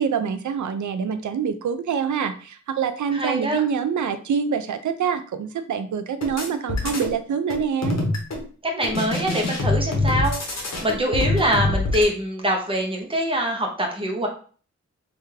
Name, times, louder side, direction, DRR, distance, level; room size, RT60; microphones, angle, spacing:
voice 1, 0.0-8.0, right 7 dB, 75° right, 11 dB, 0.4 m, -25 dB
voice 2, 3.1-3.6 8.6-14.3, equal, 20° right, 1 dB, 0.7 m, -24 dB
sound 1, 6.2-7.1 7.5-8.4 8.8-12.0, left 2 dB, 60° left, 1.0 m, -25 dB
3.3 x 2.4 x 3.2 m, 0.41 s
wide cardioid pair, 115°, 30 cm